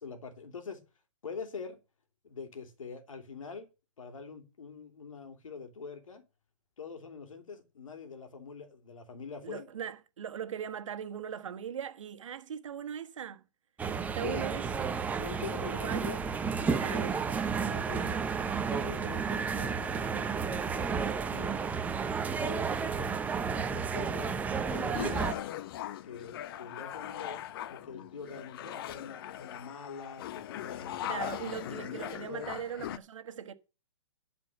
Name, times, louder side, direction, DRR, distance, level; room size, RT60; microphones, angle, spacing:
voice 1, 0.0-0.8 1.2-1.8 2.2-3.7 4.0-6.2 6.8-9.7 14.2-14.5 15.2-16.2 16.6-17.1 17.6-18.2 18.7-21.6 22.3-23.2 23.5-25.5 26.0-31.3 31.8-32.5, left 5 dB, 85° left, 2.8 m, -44 dB
voice 2, 9.4-13.4 14.0-15.0 15.5-16.1 16.8-17.2 31.1-33.5, right 8 dB, 70° right, 1.5 m, -39 dB
sound 1, 13.8-25.3, right 5 dB, 10° right, 0.7 m, -32 dB
sound 2, 24.7-33.0, left 12 dB, 45° left, 0.8 m, -40 dB
12.0 x 5.1 x 7.0 m
hypercardioid pair, 145°, 16 cm